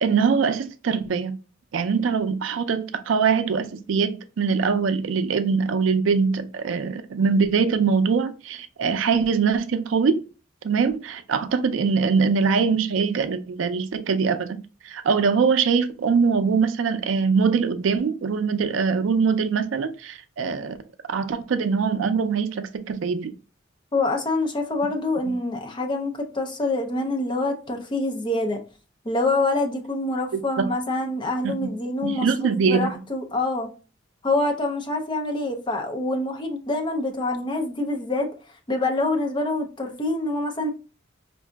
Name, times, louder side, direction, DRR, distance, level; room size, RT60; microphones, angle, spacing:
voice 1, 0.0-1.4 1.7-10.2 10.6-20.8 21.1-23.3 30.3-30.7 31.4-31.7 32.0-32.9, right 5 dB, 75° right, 0.4 m, -23 dB
voice 2, 23.9-28.6 29.0-33.7 34.2-38.3 38.7-40.7, left 2 dB, 25° left, 0.5 m, -26 dB
4.7 x 2.6 x 2.2 m
head